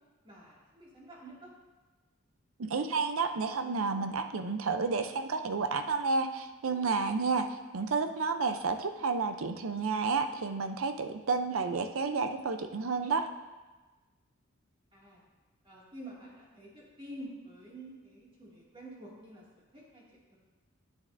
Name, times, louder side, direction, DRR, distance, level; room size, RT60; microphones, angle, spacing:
voice 1, 0.2-1.5 14.9-15.2 15.6-20.0 20.3-20.4, right 1 dB, 25° right, -6 dB, 2.2 m, -48 dB
voice 2, 2.6-7.5 7.7-13.3, right 4 dB, 70° right, 8 dB, 0.6 m, -31 dB
9.4 x 8.9 x 2.6 m, 1.2 s
head